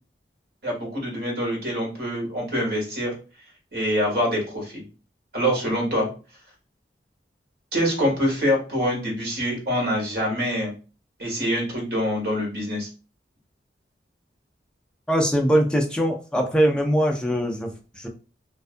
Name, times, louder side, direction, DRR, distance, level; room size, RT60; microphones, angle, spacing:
voice 1, 0.6-3.1 3.7-4.9 5.3-6.1 7.7-10.7 11.2-12.9, equal, 60° right, -1 dB, 1.2 m, -25 dB
voice 2, 15.1-18.1, equal, 5° left, 2 dB, 0.3 m, -22 dB
2.5 x 2.3 x 2.4 m, 0.35 s
head